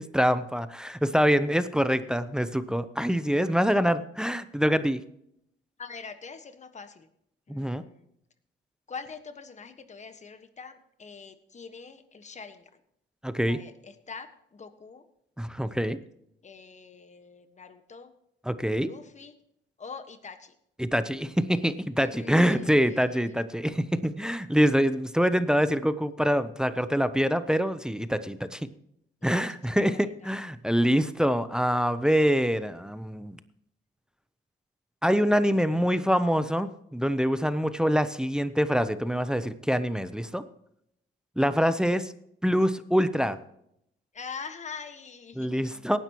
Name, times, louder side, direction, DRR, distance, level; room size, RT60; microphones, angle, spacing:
voice 1, 0.0-5.0 7.5-7.8 13.2-13.6 15.4-16.0 18.4-18.9 20.8-28.6 29.2-33.4 35.0-40.4 41.4-42.1 42.4-43.4 45.4-46.0, equal, 5° right, 12 dB, 0.6 m, -25 dB
voice 2, 5.8-7.1 7.5-8.0 8.9-12.6 13.5-15.0 16.4-18.1 18.8-19.3 19.8-20.5 22.0-23.3 29.3-29.8 30.2-30.3 41.8-42.0 44.1-45.8, left 5 dB, 35° left, 9 dB, 1.4 m, -44 dB
18.0 x 10.5 x 3.0 m, 0.74 s
cardioid pair, 90°, 20 cm